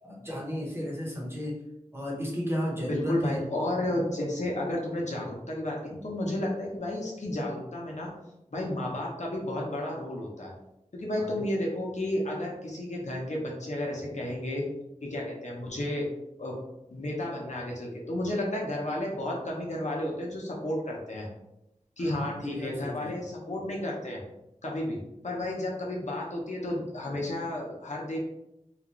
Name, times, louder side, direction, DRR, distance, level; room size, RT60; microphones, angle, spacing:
voice 1, 0.0-1.6 1.9-3.4 11.2-11.5 22.0-23.3, equal, 20° right, -4 dB, 1.1 m, -34 dB
voice 2, 2.9-8.1 8.5-10.5 10.9-14.6 15.0-16.0 16.4-16.6 16.9-21.3 22.0-24.2 24.6-25.0 25.2-28.2, left 1 dB, 65° left, -3 dB, 0.9 m, -32 dB
3.1 x 2.5 x 3.0 m, 0.88 s
wide cardioid pair, 60°, 13 cm